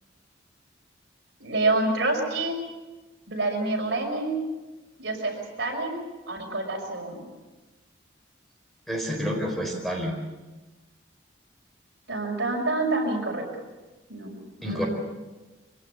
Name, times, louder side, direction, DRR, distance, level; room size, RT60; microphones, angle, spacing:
voice 1, 1.4-2.6 3.3-4.4 5.0-6.0 6.3-7.2 12.1-13.4 14.1-14.9, right 2 dB, 60° right, 0 dB, 6.1 m, -27 dB
voice 2, 8.9-10.2 14.6-14.9, equal, ahead, 0 dB, 4.4 m, -29 dB
24.5 x 18.0 x 8.2 m, 1.2 s
head